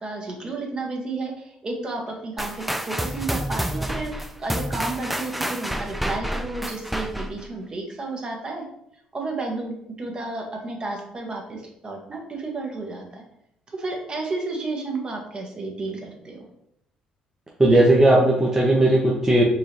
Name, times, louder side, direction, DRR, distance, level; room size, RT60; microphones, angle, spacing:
voice 1, 0.0-8.6 9.1-13.2 13.7-16.4, right 3 dB, 35° right, 0 dB, 1.2 m, -32 dB
sound 1, 2.4-7.5, right 1 dB, 5° right, 0.4 m, -29 dB
voice 2, 17.6-19.4, right 1 dB, 20° right, -3 dB, 0.9 m, -17 dB
4.7 x 2.7 x 3.0 m, 0.75 s
hypercardioid pair, 60°, 3 cm